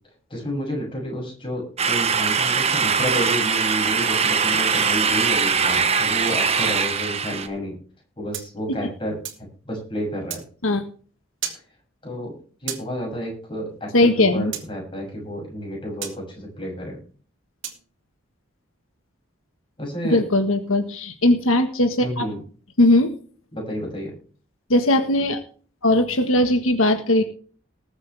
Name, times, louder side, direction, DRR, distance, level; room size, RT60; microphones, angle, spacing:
voice 1, 0.3-7.8 8.2-9.2 9.7-10.4 12.0-12.3 12.6-17.0 19.8-20.3 22.0-22.4 23.5-24.1, equal, 25° left, -1 dB, 7.0 m, -30 dB
sound 1, 1.8-7.5, right 6 dB, 30° right, 1.1 m, -21 dB
sound 2, 8.3-9.5 10.3-10.5 11.4-11.6 12.7-12.9 14.5-14.7 16.0-16.2 17.6-17.8, right 9 dB, 65° right, 2.7 m, -32 dB
voice 2, 13.9-14.5 20.1-22.3 22.8-23.1 24.7-25.4 25.8-27.2, left 1 dB, 85° left, 7 dB, 1.5 m, -19 dB
20.0 x 8.0 x 3.5 m, 0.42 s
head